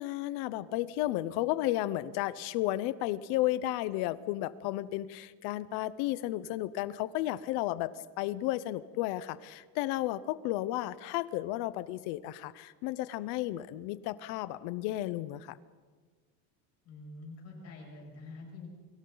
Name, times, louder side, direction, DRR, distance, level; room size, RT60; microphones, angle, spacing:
voice 1, 0.0-15.6, left 15 dB, 65° left, 17 dB, 0.8 m, -33 dB
voice 2, 16.8-18.7, left 3 dB, 35° left, -1 dB, 7.4 m, -46 dB
29.0 x 25.0 x 4.0 m, 1.5 s
cardioid pair, 170°, 41 cm